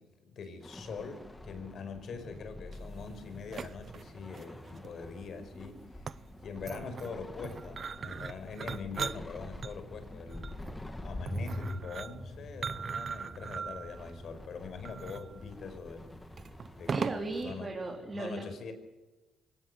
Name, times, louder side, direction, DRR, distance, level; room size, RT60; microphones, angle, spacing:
voice 1, 0.0-6.1 6.4-10.6 11.0-16.2 16.8-17.7 18.1-18.7, left 5 dB, 60° left, 9 dB, 5.2 m, -43 dB
sound 1, 0.6-17.7, left 1 dB, 15° left, 2.7 m, -45 dB
sound 2, 2.7-17.5, right 6 dB, 45° right, 0.7 m, -41 dB
sound 3, 9.7-18.2, equal, 30° left, 6.7 m, -55 dB
voice 2, 16.9-18.5, right 2 dB, 25° right, 1 dB, 3.8 m, -36 dB
24.5 x 18.0 x 8.1 m, 1.1 s
cardioid pair, 90°, 0 cm